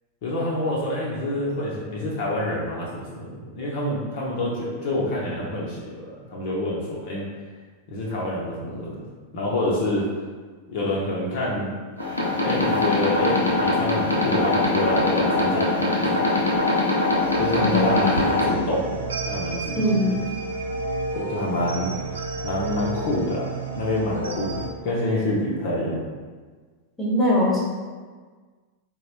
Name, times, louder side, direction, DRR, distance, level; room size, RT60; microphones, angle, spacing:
voice 1, 0.2-7.3 7.9-9.0 9.3-10.0 10.7-11.7 12.3-16.4 17.4-20.1 21.1-21.9 22.4-23.5 23.7-26.0, left 1 dB, 50° left, -5 dB, 0.6 m, -27 dB
sound 1, 12.0-18.5, left 2 dB, 90° left, 0.6 m, -22 dB
sound 2, 17.2-24.7, right 3 dB, 70° right, 0.4 m, -32 dB
voice 2, 17.6-18.2 19.8-20.1 27.0-27.6, left 1 dB, 5° left, -6 dB, 0.9 m, -22 dB
4.1 x 2.0 x 2.9 m, 1.5 s
figure-of-eight pair, 90°, 0 cm